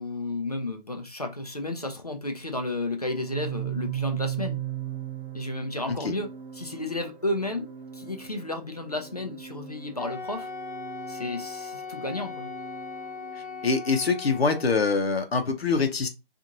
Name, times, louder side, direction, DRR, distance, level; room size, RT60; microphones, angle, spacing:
voice 1, 0.0-4.6 5.3-6.3 6.6-7.7 7.9-10.5 11.1-12.5, left 2 dB, 40° left, 0.5 m, -32 dB
Organ, 3.0-13.8, right 12 dB, 55° right, 1.0 m, -38 dB
Wind instrument woodwind instrument, 10.0-14.9, left 4 dB, 25° right, 0.7 m, -39 dB
voice 2, 13.3-16.1, left 4 dB, 85° left, 0.7 m, -25 dB
2.5 x 2.5 x 2.8 m
figure-of-eight pair, 180°, 30 cm